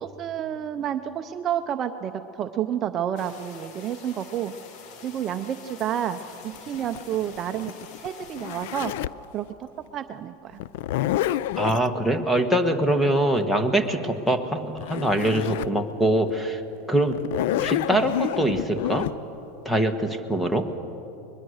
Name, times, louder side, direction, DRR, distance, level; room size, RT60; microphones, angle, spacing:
voice 1, 0.0-4.5 5.0-8.9 9.3-10.6, right 10 dB, 30° right, 8 dB, 0.5 m, -30 dB
sound 1, 3.2-8.9, left 6 dB, 50° left, 1.6 m, -46 dB
Zipper (clothing), 6.6-9.3 10.6-11.9 14.5-14.6 14.8-15.8 16.3-16.4 17.1-19.1, left 13 dB, 70° left, 0.4 m, -28 dB
voice 2, 11.6-16.6 16.9-17.2 17.6-19.1 19.6-20.7, right 1 dB, 5° left, 8 dB, 1.2 m, -23 dB
21.5 x 21.0 x 6.4 m, 3.0 s
supercardioid pair, 155°, 0 cm